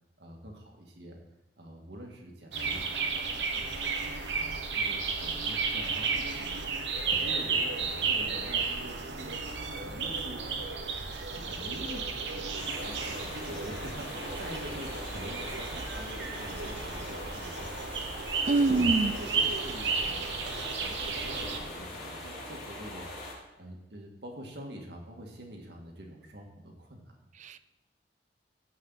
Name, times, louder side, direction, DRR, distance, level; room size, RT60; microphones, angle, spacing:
voice 1, 0.2-1.2 1.6-3.9 4.3-10.5 11.3-17.7 18.7-20.3 20.7-23.1 23.6-27.3, right 1 dB, 70° right, 1 dB, 1.9 m, -46 dB
sound 1, 2.5-21.6, right 4 dB, 90° right, 1.1 m, -33 dB
sound 2, 12.5-23.3, left 1 dB, 55° left, 3.1 m, -42 dB
voice 2, 18.5-19.1 27.4-27.6, right 3 dB, 45° right, 14 dB, 0.4 m, -25 dB
15.0 x 5.6 x 4.0 m, 0.92 s
head